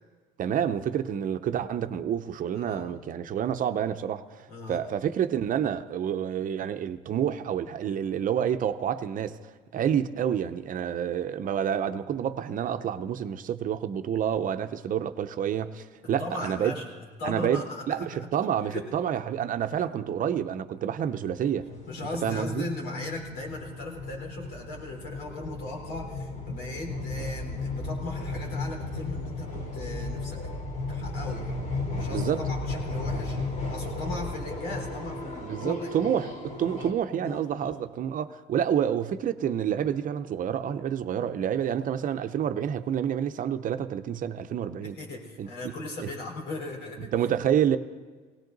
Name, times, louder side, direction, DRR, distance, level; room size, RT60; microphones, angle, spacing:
voice 1, 0.4-16.7 17.2-21.7 22.2-22.7 32.1-32.4 35.4-45.0 45.4-45.5 46.0-46.1 47.0-47.8, right 9 dB, 50° right, 0.8 m, -28 dB
voice 2, 2.5-2.9 4.5-4.8 16.0-16.9 17.2-18.3 18.7-18.9 21.9-30.4 30.9-31.6 31.9-33.4 33.7-35.9 37.2-37.8 44.8-47.1, left 2 dB, 80° left, 4.0 m, -38 dB
sound 1, 21.0-36.9, left 2 dB, 45° left, 3.5 m, -35 dB
18.5 x 18.0 x 4.0 m
cardioid pair, 110°, 17 cm